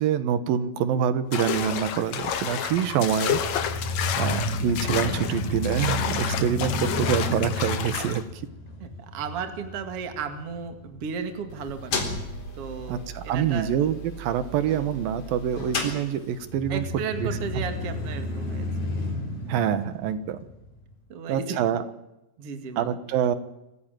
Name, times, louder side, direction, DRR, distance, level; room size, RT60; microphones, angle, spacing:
voice 1, 0.0-3.4 4.2-8.3 12.9-16.9 17.2-17.3 17.6-17.7 19.5-20.4 21.3-21.8 22.8-23.4, right 9 dB, 80° right, 13 dB, 2.9 m, -26 dB
sound 1, 1.3-8.2, left 8 dB, 60° left, 2.4 m, -30 dB
sound 2, 3.2-11.3 11.8-11.9 16.4-20.9, left 1 dB, 85° left, 6.2 m, -32 dB
voice 2, 8.8-12.1 12.6-13.7 16.7-18.7 21.1-21.6 22.4-23.0, right 6 dB, 45° right, 7 dB, 2.8 m, -34 dB
sound 3, 11.5-16.6, left 2 dB, 40° left, 4.8 m, -35 dB
25.5 x 15.5 x 9.0 m, 0.93 s
omnidirectional pair, 4.2 m